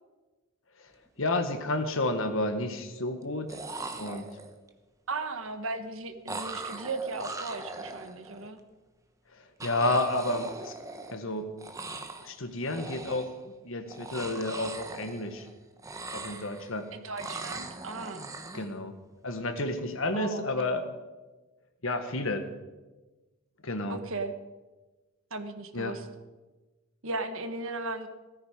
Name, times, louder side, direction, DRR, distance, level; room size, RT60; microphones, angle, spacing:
sound 1, 1.1-1.2 1.6-2.2 3.2-3.3 3.5-4.7 6.3-8.5 9.6-11.3 11.6-12.3 12.6-13.4 13.9-15.5 15.8-16.8 17.2-18.7, right 3 dB, 15° right, 0.9 m, -40 dB
voice 1, 1.2-3.6 3.9-4.2 9.6-10.7 11.1-11.5 12.2-13.3 13.6-15.5 16.1-16.9 18.5-18.9 19.2-20.8 21.8-22.5 23.6-24.0 25.7-26.0, left 2 dB, 60° left, 8 dB, 1.5 m, -30 dB
voice 2, 5.1-8.6 16.9-18.3 20.1-20.7 23.9-24.3 25.3-26.1 27.0-28.1, right 3 dB, 65° right, 8 dB, 1.4 m, -36 dB
16.5 x 14.5 x 5.2 m, 1.2 s
head